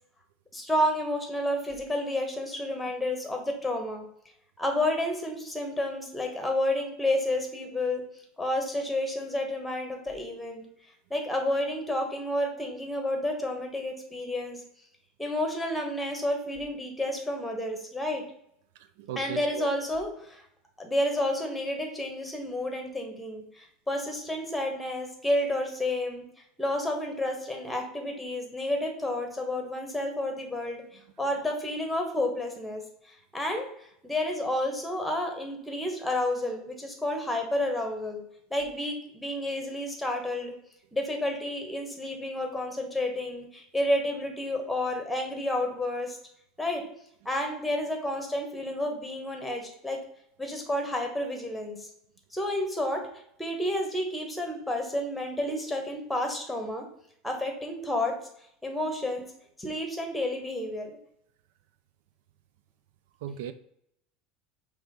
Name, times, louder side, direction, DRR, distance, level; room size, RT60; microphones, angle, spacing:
voice 1, 0.5-4.0 4.6-8.0 8.4-10.6 11.1-14.6 15.2-18.2 19.1-20.4 20.8-26.2 26.6-30.8 31.2-33.7 34.0-38.2 38.5-40.5 40.9-46.2 46.6-46.8 47.2-50.0 50.4-51.9 52.3-53.1 53.4-56.9 57.2-58.2 58.6-59.2 59.6-61.0, left 1 dB, 5° left, 3 dB, 1.2 m, -30 dB
voice 2, 19.0-19.7 63.2-63.5, right 9 dB, 80° right, 12 dB, 0.5 m, -36 dB
5.9 x 3.1 x 5.2 m, 0.71 s
supercardioid pair, 145°, 0 cm